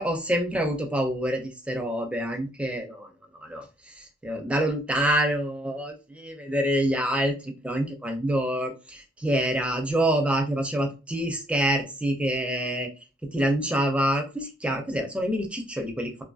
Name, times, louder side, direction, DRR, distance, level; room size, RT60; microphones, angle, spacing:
voice 1, 0.0-12.9 13.2-16.2, right 1 dB, 5° right, 3 dB, 0.4 m, -27 dB
2.5 x 2.5 x 2.3 m, 0.32 s
head